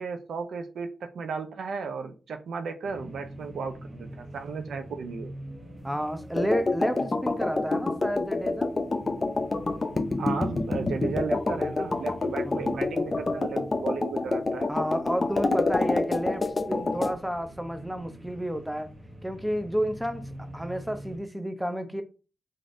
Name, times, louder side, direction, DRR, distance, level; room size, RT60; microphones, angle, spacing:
voice 1, 0.0-5.3 10.2-14.7, right 5 dB, 80° right, 0.4 m, -34 dB
sound 1, 2.8-21.2, equal, 45° right, 1.0 m, -45 dB
voice 2, 5.8-8.7 12.4-12.9 14.7-16.4 16.7-18.9 19.2-20.2 20.5-22.0, equal, 5° right, 0.6 m, -31 dB
sound 2, 6.4-17.2, left 3 dB, 45° left, 0.5 m, -28 dB
3.1 x 2.5 x 2.6 m
supercardioid pair, 40°, 0 cm